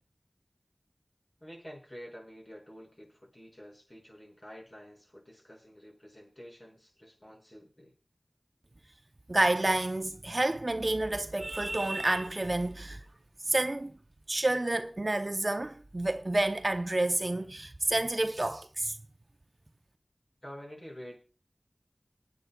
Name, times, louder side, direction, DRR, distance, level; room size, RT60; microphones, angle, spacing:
voice 1, 1.4-7.9 20.4-21.2, equal, 40° left, 5.6 m, -49 dB
voice 2, 9.3-13.0 13.5-13.9 14.3-19.0, right 2 dB, 45° right, 0.6 m, -29 dB
27.0 x 9.3 x 2.3 m
wide cardioid pair, 50°, 0 cm